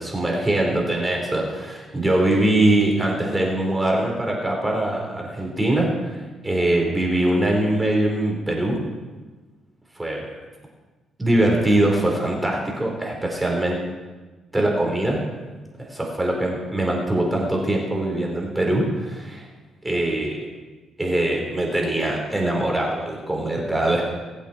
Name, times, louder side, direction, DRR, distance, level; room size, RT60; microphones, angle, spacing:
voice 1, 0.0-8.8 10.0-10.4 11.2-13.8 14.5-15.2 15.8-19.5 19.8-20.5 21.0-24.1, right 1 dB, 15° right, 0 dB, 4.4 m, -22 dB
23.5 x 8.4 x 4.5 m, 1.3 s
cardioid pair, 90°, 0 cm